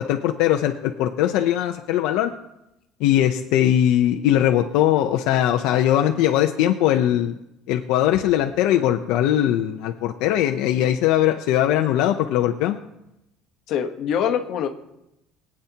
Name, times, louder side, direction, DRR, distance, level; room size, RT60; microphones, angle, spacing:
voice 1, 0.0-2.3 3.0-7.3 7.7-12.8, left 12 dB, 70° left, 4 dB, 0.7 m, -20 dB
voice 2, 13.7-14.7, left 8 dB, 50° left, 5 dB, 1.1 m, -24 dB
22.0 x 8.7 x 2.9 m, 0.87 s
cardioid pair, 175°, 0 cm